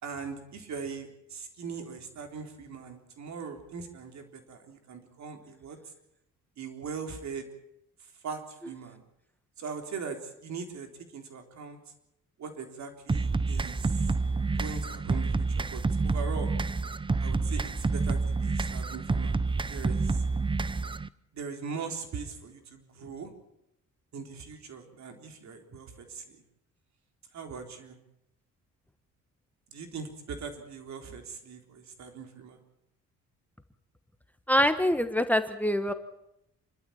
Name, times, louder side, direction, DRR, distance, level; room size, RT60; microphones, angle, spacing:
voice 1, 0.0-5.8 6.6-7.5 8.0-9.0 9.6-11.8 12.4-14.1 14.5-16.5 17.2-20.2 21.3-23.3 24.1-26.4 27.3-28.0 29.7-32.6, right 5 dB, 65° right, 5 dB, 3.8 m, -40 dB
sound 1, 13.1-21.1, right 3 dB, 15° right, 0.7 m, -28 dB
voice 2, 34.5-35.9, equal, 5° left, 11 dB, 1.3 m, -25 dB
27.5 x 12.5 x 8.7 m, 0.83 s
cardioid pair, 90°, 30 cm